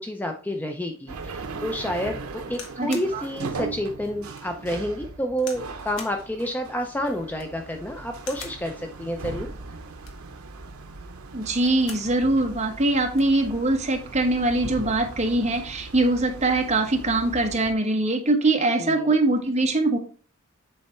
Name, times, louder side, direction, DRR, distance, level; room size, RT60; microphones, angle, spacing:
voice 1, 0.0-9.5 18.8-19.1, equal, 10° left, 4 dB, 0.5 m, -29 dB
sound 1, 1.1-17.7, right 3 dB, 85° right, 0.7 m, -39 dB
sound 2, 2.5-3.1 3.7-3.8 4.3-4.5 5.4-5.7 6.0-6.2 7.2-7.6 8.2-8.6 9.9-10.3 11.4-12.1 12.5-12.6 12.8-13.3 14.2-14.5, left 5 dB, 60° left, 1.3 m, -42 dB
voice 2, 2.8-3.2 11.3-20.0, right 2 dB, 30° right, 3 dB, 1.1 m, -22 dB
7.4 x 3.3 x 4.3 m, 0.40 s
head